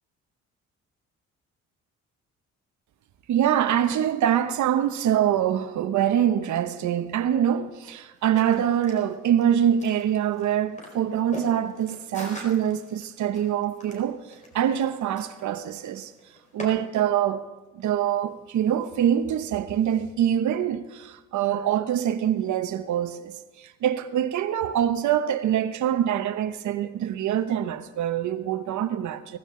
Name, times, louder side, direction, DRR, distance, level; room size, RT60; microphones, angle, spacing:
voice 1, 3.3-14.2 14.5-16.1 16.5-17.4 17.7-29.4, right 10 dB, 70° right, 1.0 m, -24 dB
sound 1, 8.2-16.7, left 1 dB, 25° left, 4.6 m, -44 dB
17.5 x 15.0 x 3.8 m
cardioid pair, 90°, 30 cm